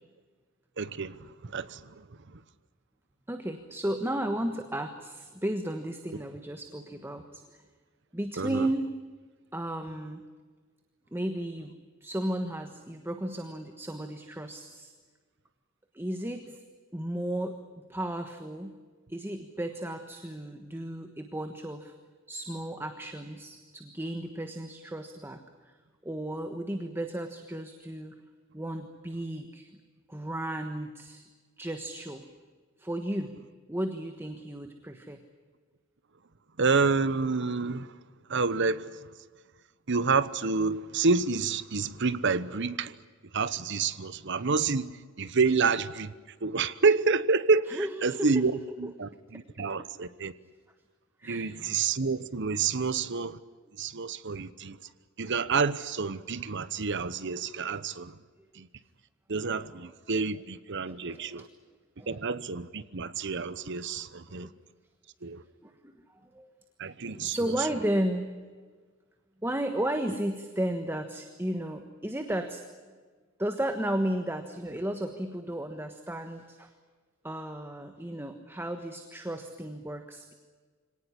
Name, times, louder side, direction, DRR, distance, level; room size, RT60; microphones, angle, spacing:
voice 1, 0.8-1.9 8.4-8.7 36.6-37.9 38.3-39.1 39.9-42.9 43.3-46.1 46.4-50.3 51.2-53.4 53.8-54.8 55.2-58.1 58.5-58.7 59.3-61.5 62.1-64.5 65.2-65.4 66.8-67.3, right 4 dB, 60° right, 1.0 m, -28 dB
voice 2, 3.3-7.6 8.1-8.9 9.5-10.2 11.1-11.7 12.0-14.9 15.9-16.6 16.9-18.7 19.1-21.9 22.3-25.7 26.0-28.2 28.5-29.7 30.1-31.2 31.6-32.2 32.8-35.2 47.7-48.3 48.8-48.9 49.3-49.9 51.2-51.6 59.6-59.7 60.8-61.5 62.0-62.2 64.3-64.5 65.6-66.5 67.1-68.3 69.4-72.6 73.4-76.7 77.2-80.3, right 1 dB, 10° right, 1.3 m, -34 dB
25.0 x 18.5 x 9.9 m
head